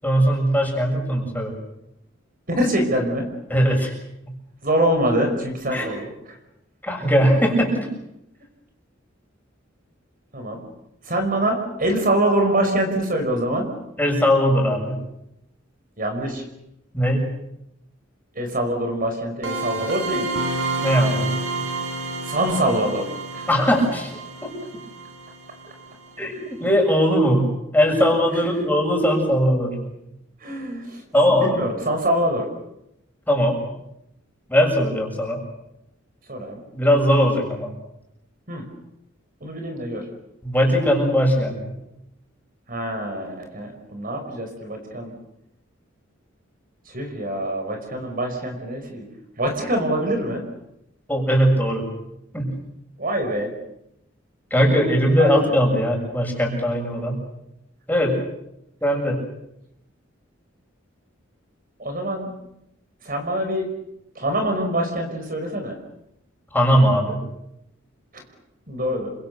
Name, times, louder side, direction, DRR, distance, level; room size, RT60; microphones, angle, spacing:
voice 1, 0.0-1.5 3.5-3.9 5.7-5.9 6.8-7.9 14.0-15.0 16.9-17.3 20.8-21.4 23.5-24.1 24.4-24.6 26.2-29.9 31.1-31.6 33.3-33.6 34.5-35.4 36.7-37.7 40.4-41.8 51.1-51.9 52.3-52.5 54.5-57.2 57.9-58.2 58.8-59.2 66.5-67.2, equal, 10° left, 0 dB, 6.8 m, -20 dB
voice 2, 2.5-3.3 4.6-6.1 10.3-10.6 11.0-13.7 16.0-16.4 18.4-20.3 22.2-23.1 23.3-23.5 28.3-28.6 30.4-31.0 31.3-32.5 36.3-36.6 38.5-38.6 39.4-40.0 42.7-45.2 46.9-49.0 49.4-50.4 53.0-53.5 55.2-55.4 61.8-62.3 63.0-63.7 64.2-65.8 68.1-68.2 68.7-69.1, right 1 dB, 45° right, 5 dB, 5.3 m, -24 dB
sound 1, 19.4-26.1, right 2 dB, 80° right, 7.2 m, -29 dB
29.0 x 26.0 x 6.9 m, 0.83 s
head